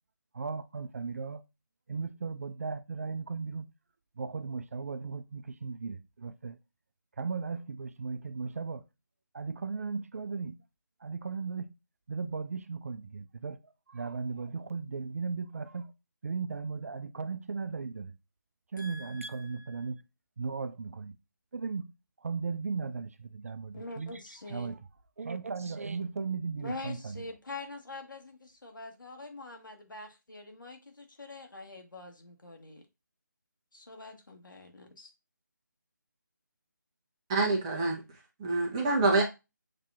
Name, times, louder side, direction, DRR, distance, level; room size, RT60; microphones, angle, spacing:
voice 1, 0.3-1.4 1.9-3.7 4.2-6.6 7.2-8.8 9.3-10.6 11.0-11.7 12.1-15.9 16.2-18.1 18.7-20.0 20.4-21.2 21.5-21.9 22.2-24.8 25.2-27.2, right 4 dB, 45° right, 0.4 m, -36 dB
voice 2, 18.8-19.8 23.7-24.7 26.6-32.8 33.7-35.1, left 3 dB, 80° left, 1.3 m, -45 dB
voice 3, 37.3-38.0 38.4-39.2, right 3 dB, 15° right, 0.7 m, -26 dB
7.3 x 2.8 x 2.4 m
figure-of-eight pair, 160°, 11 cm